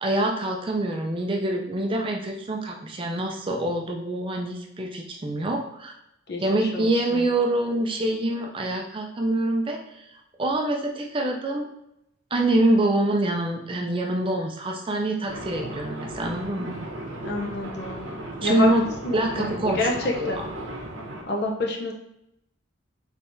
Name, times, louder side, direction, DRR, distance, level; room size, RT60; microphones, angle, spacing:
voice 1, 0.0-5.9 6.4-10.1 10.4-11.6 12.3-16.8 18.4-18.8 19.1-19.9 20.2-20.5, right 1 dB, 25° right, 1 dB, 0.4 m, -25 dB
voice 2, 6.3-7.3 17.2-18.1 18.4-18.7 19.0-20.4 21.3-21.9, left 2 dB, 55° left, -1 dB, 0.7 m, -28 dB
sound 1, 15.3-21.2, right 1 dB, 75° right, 0.8 m, -36 dB
3.5 x 3.3 x 2.6 m, 0.80 s
head